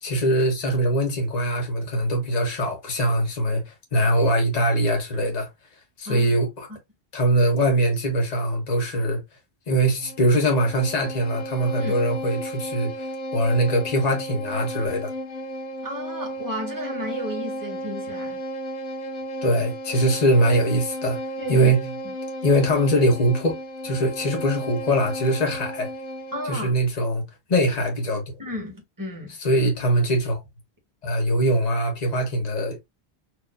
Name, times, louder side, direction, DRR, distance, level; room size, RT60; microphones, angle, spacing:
voice 1, 0.0-5.5 6.0-6.7 7.1-9.2 9.7-15.1 19.4-21.2 21.5-21.9 22.4-23.5 23.8-25.9 26.5-27.2 27.5-28.2 29.4-30.4 31.0-32.8, right 1 dB, 40° left, 1.3 m, -22 dB
Bowed string instrument, 10.0-26.6, right 1 dB, 55° left, 0.8 m, -33 dB
voice 2, 15.8-18.4 21.4-21.7 22.0-22.1 26.3-26.7 28.4-29.3, left 1 dB, 20° right, 1.6 m, -33 dB
4.6 x 2.8 x 2.6 m
omnidirectional pair, 1.1 m